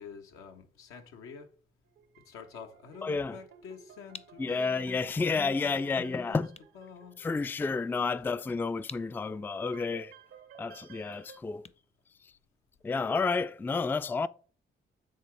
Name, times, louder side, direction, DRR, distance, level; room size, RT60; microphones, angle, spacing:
voice 1, 0.0-1.5 2.2-4.9 5.2-6.4 6.7-7.2, left 6 dB, 85° left, 1.1 m, -48 dB
sound 1, 1.8-11.4, right 8 dB, 75° right, 0.8 m, -55 dB
voice 2, 3.0-3.4 4.4-6.6 7.2-10.1 10.6-11.7 12.2-12.3 12.8-14.3, left 4 dB, 10° left, 0.3 m, -30 dB
sound 2, 6.5-12.9, left 4 dB, 30° left, 0.7 m, -55 dB
9.1 x 3.9 x 3.3 m
supercardioid pair, 50°, 21 cm